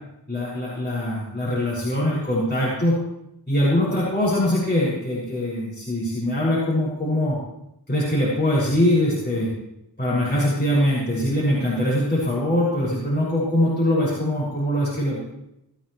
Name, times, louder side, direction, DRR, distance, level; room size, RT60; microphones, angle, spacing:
voice 1, 0.3-3.0 3.5-7.4 7.9-9.5 10.0-15.2, left 1 dB, 25° left, -9 dB, 6.4 m, -22 dB
27.5 x 11.0 x 3.3 m, 0.86 s
wide cardioid pair, 40°, 42 cm